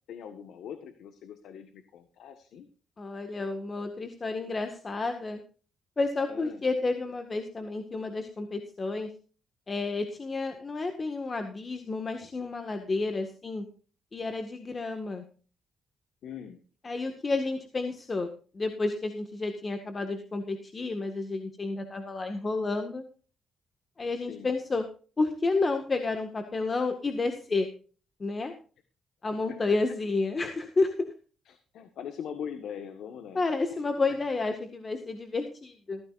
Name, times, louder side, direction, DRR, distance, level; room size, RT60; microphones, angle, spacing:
voice 1, 0.1-2.7 6.3-6.6 16.2-16.6 24.1-24.5 29.5-29.6 31.4-33.4 33.7-33.8, left 8 dB, 75° left, 8 dB, 1.5 m, -42 dB
voice 2, 3.0-5.4 6.0-9.1 9.7-13.7 14.1-15.2 16.8-23.0 24.0-24.8 25.2-27.7 28.2-28.5 29.2-31.1 33.4-36.0, left 3 dB, 30° left, 6 dB, 1.8 m, -30 dB
16.0 x 14.5 x 2.6 m, 0.40 s
cardioid pair, 90°, 0 cm